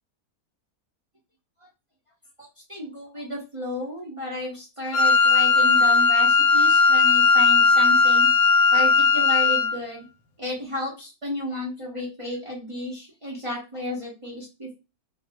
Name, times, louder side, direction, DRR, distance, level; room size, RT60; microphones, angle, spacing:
voice 1, 2.7-8.3 8.7-10.0 10.4-14.8, left 1 dB, 40° right, -4 dB, 0.5 m, -33 dB
Wind instrument woodwind instrument, 4.9-9.8, left 4 dB, 70° left, 1.0 m, -17 dB
2.6 x 2.0 x 2.7 m, 0.27 s
omnidirectional pair, 1.6 m